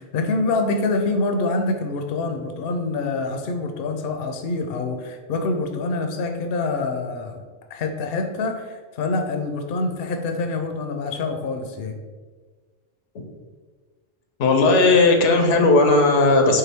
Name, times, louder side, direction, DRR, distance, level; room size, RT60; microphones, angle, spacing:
voice 1, 0.0-7.4 7.7-11.9, left 3 dB, 65° left, 5 dB, 0.7 m, -26 dB
voice 2, 14.4-16.6, left 3 dB, 90° left, 4 dB, 1.0 m, -16 dB
4.7 x 3.3 x 3.4 m, 1.4 s
omnidirectional pair, 1.2 m